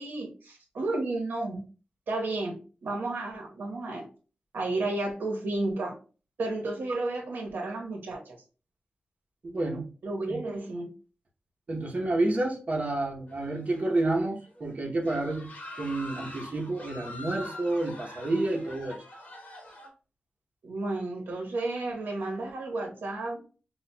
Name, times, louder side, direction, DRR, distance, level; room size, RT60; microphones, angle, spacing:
voice 1, 0.0-1.6 2.1-4.1 4.5-6.0 6.4-8.3 10.0-10.9 20.6-23.4, right 2 dB, 90° right, 1 dB, 1.0 m, -32 dB
voice 2, 9.4-9.9 10.3-10.4 11.7-15.5 15.8-19.0, right 2 dB, 45° right, -2 dB, 0.8 m, -29 dB
sound 1, 13.3-14.1 14.5-14.6 15.0-19.9, left 2 dB, 55° left, 1.1 m, -44 dB
5.7 x 2.3 x 2.2 m, 0.36 s
wide cardioid pair, 125°, 3 cm